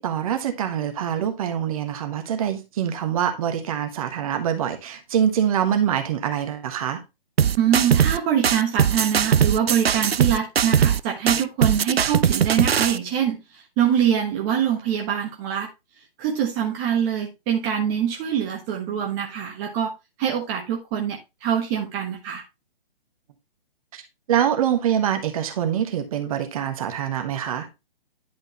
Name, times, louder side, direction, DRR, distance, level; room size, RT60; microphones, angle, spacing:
voice 1, 0.0-7.0 23.9-24.0 24.3-27.7, right 9 dB, 35° right, 1.4 m, -24 dB
sound 1, 7.4-8.2 8.4-11.0 11.3-13.0, right 8 dB, 80° right, 0.5 m, -20 dB
voice 2, 7.6-15.7 16.2-19.9 20.2-22.4, right 9 dB, 20° right, 1.2 m, -24 dB
10.5 x 5.2 x 3.0 m
figure-of-eight pair, 135°, 30 cm